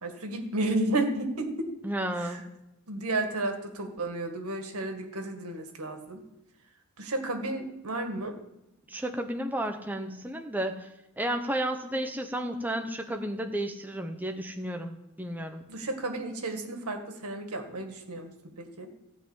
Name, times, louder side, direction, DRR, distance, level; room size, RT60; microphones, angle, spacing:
voice 1, 0.0-1.7 2.2-2.4 2.9-6.2 7.0-8.4 15.7-18.3 18.6-18.9, right 2 dB, 90° right, 5 dB, 2.0 m, -32 dB
voice 2, 1.8-2.4 8.9-10.9 11.2-15.7, right 1 dB, 10° right, 4 dB, 0.8 m, -32 dB
15.0 x 5.5 x 9.0 m, 0.93 s
head